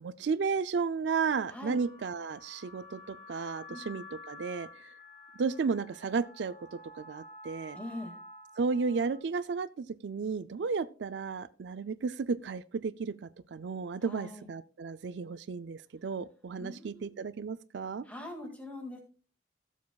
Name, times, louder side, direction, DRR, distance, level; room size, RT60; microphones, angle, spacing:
voice 1, 0.0-4.7 5.4-7.8 8.6-18.0, right 5 dB, 75° right, 0.4 m, -33 dB
sound 1, 1.3-9.2, left 2 dB, 30° left, 1.9 m, -50 dB
voice 2, 7.8-8.1 14.0-14.5 16.6-17.1 18.0-19.0, left 2 dB, 10° left, 2.0 m, -42 dB
16.5 x 7.2 x 2.3 m
head